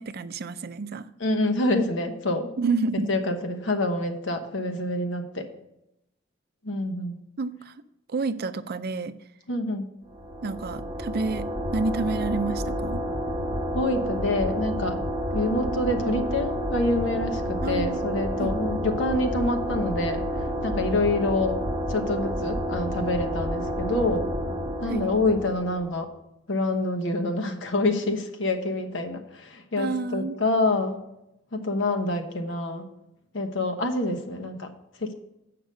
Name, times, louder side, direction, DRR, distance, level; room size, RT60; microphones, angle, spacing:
voice 1, 0.0-1.1 2.6-3.1 7.4-7.7 8.1-9.2 10.4-13.0 17.6-18.0 18.4-18.5 24.9-25.1 29.8-30.4, right 3 dB, 55° right, 13 dB, 0.5 m, -29 dB
voice 2, 1.2-2.5 3.1-5.4 6.6-7.2 9.5-9.9 13.7-15.0 15.3-20.2 20.6-21.6 21.9-24.3 24.8-26.1 26.5-31.0 31.5-32.9 33.3-34.7 35.0-35.1, left 2 dB, 70° left, 5 dB, 1.0 m, -26 dB
sound 1, 10.1-26.0, equal, 25° right, 0.9 m, -30 dB
7.9 x 5.8 x 6.6 m, 0.87 s
head